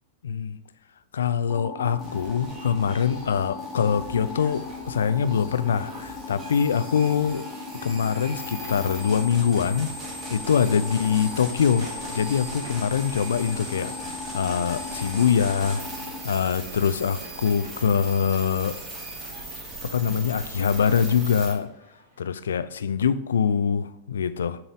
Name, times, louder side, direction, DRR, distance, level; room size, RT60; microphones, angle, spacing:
voice 1, 0.2-0.6 1.1-7.4 7.8-9.9 10.3-15.8 16.2-18.8 19.8-21.7 22.2-24.6, left 7 dB, 65° left, 13 dB, 0.3 m, -24 dB
sound 1, 1.5-16.2, left 4 dB, 30° left, 1.4 m, -38 dB
sound 2, 2.0-21.5, right 1 dB, 30° right, 2.5 m, -39 dB
sound 3, 7.5-22.5, equal, 75° right, 1.8 m, -49 dB
7.1 x 3.9 x 4.8 m, 0.87 s
figure-of-eight pair, 90°, 0 cm